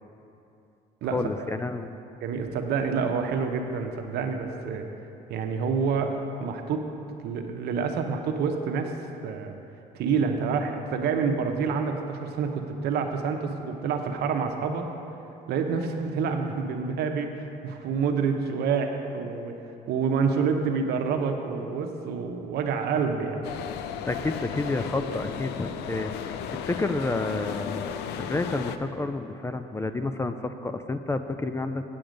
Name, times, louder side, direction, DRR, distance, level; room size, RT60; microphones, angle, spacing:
voice 1, 1.1-1.9 24.1-31.8, left 2 dB, 15° left, 9 dB, 0.4 m, -30 dB
voice 2, 2.2-4.9 5.3-6.8 7.2-8.9 9.2-9.5 9.9-14.9 15.5-19.6 19.9-23.5, right 5 dB, 75° right, 5 dB, 0.9 m, -28 dB
sound 1, 23.4-28.8, left 8 dB, 80° left, 0.5 m, -34 dB
8.5 x 7.7 x 5.1 m, 2.8 s
cardioid pair, 110°, 17 cm